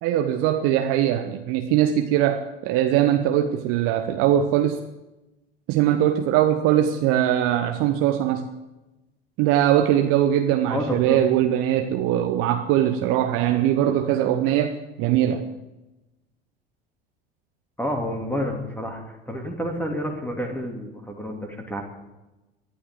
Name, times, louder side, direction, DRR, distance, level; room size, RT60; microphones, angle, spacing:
voice 1, 0.0-4.8 5.7-8.5 9.4-14.7 15.0-15.5, right 11 dB, 45° right, 6 dB, 1.1 m, -21 dB
voice 2, 10.7-11.2 17.8-19.0 19.3-21.8, equal, 5° left, 1 dB, 2.9 m, -29 dB
23.0 x 15.0 x 3.9 m, 1.0 s
figure-of-eight pair, 70°, 31 cm